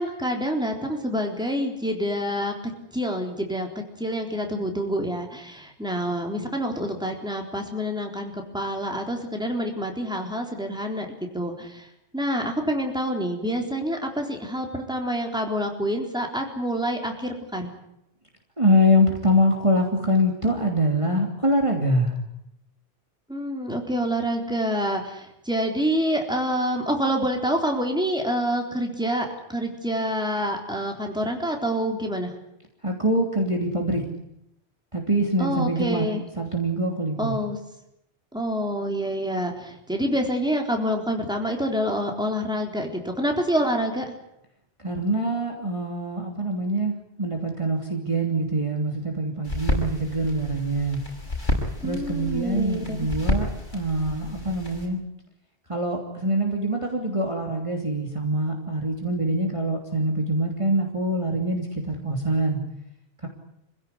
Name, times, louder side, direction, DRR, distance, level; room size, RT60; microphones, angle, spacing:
voice 1, 0.0-2.5 2.9-3.7 4.0-11.1 11.3-11.9 12.1-17.7 23.3-32.3 35.4-36.2 37.2-37.6 38.3-44.1 51.8-53.1, equal, 5° right, 2 dB, 3.9 m, -27 dB
voice 2, 18.6-22.1 32.8-34.0 34.9-36.1 36.4-37.3 44.8-51.0 51.8-55.0 55.7-62.6, equal, 25° right, 1 dB, 3.1 m, -24 dB
sound 1, 49.4-54.9, left 1 dB, 45° left, 6.2 m, -30 dB
26.0 x 16.5 x 9.9 m, 0.81 s
omnidirectional pair, 1.2 m